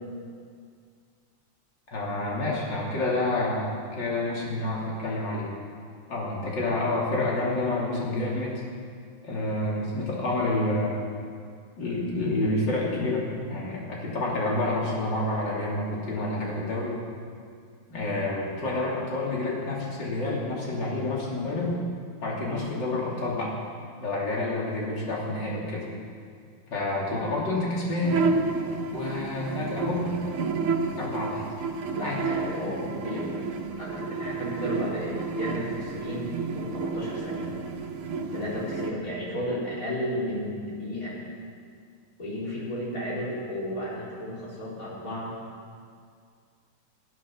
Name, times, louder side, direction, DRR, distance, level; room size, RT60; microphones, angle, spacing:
voice 1, 1.9-3.7 4.0-5.5 6.1-8.6 9.2-11.0 11.8-17.0 17.9-21.8 22.2-23.5 24.0-25.8 26.7-28.2 28.9-30.3 31.0-31.4 32.0-32.2, left 2 dB, 55° left, -4 dB, 3.6 m, -28 dB
sound 1, 28.0-38.9, right 4 dB, 85° right, 2.1 m, -31 dB
voice 2, 31.9-33.4 33.8-37.5 38.3-41.2 42.2-45.3, equal, 40° left, -7 dB, 5.0 m, -33 dB
15.0 x 13.0 x 6.4 m, 2.2 s
omnidirectional pair, 2.4 m